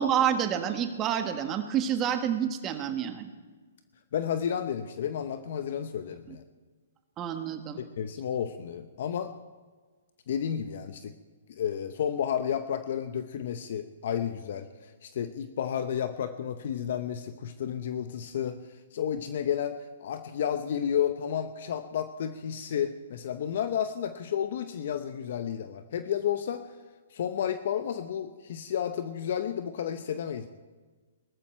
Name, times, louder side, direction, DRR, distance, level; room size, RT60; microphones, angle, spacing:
voice 1, 0.0-3.3 6.3-6.4 7.2-7.8, right 9 dB, 25° right, 7 dB, 1.4 m, -28 dB
voice 2, 4.1-6.4 8.0-9.3 10.3-11.1 11.6-18.6 18.9-19.8 20.0-26.6 27.1-30.5, left 9 dB, 60° left, 10 dB, 0.8 m, -31 dB
18.5 x 13.5 x 4.5 m, 1.4 s
hypercardioid pair, 140°, 0 cm